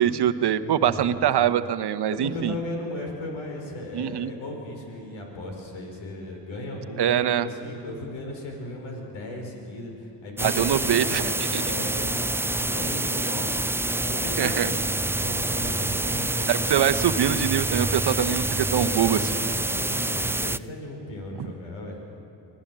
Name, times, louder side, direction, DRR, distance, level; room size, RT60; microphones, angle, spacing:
voice 1, 0.0-2.5 3.9-4.3 7.0-7.5 10.4-11.2 11.5-11.6 14.4-14.7 16.5-19.3 21.4-21.5, right 10 dB, 55° right, 11 dB, 1.0 m, -23 dB
voice 2, 0.6-1.6 2.1-14.8 15.2-16.9 18.6-22.0, left 1 dB, 75° left, 1 dB, 5.2 m, -36 dB
sound 1, 10.4-20.6, right 2 dB, 5° right, 0.4 m, -27 dB
25.0 x 17.0 x 7.5 m, 2.8 s
supercardioid pair, 55°, 47 cm